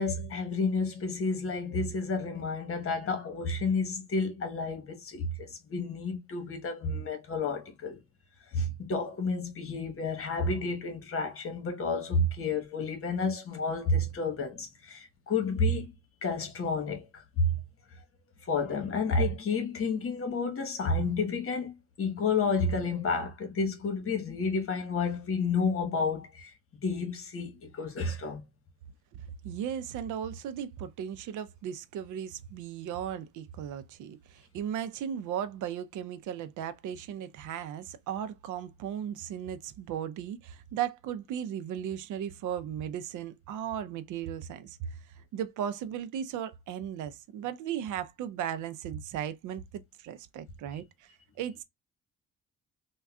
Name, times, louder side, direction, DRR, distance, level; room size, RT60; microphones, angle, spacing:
voice 1, 0.0-8.0 8.5-15.9 16.2-17.5 18.5-26.5 26.8-28.4, left 3 dB, 45° left, 1.1 m, -30 dB
voice 2, 29.4-51.6, right 9 dB, 80° right, 0.5 m, -36 dB
3.6 x 2.2 x 2.2 m
cardioid pair, 90°, 30 cm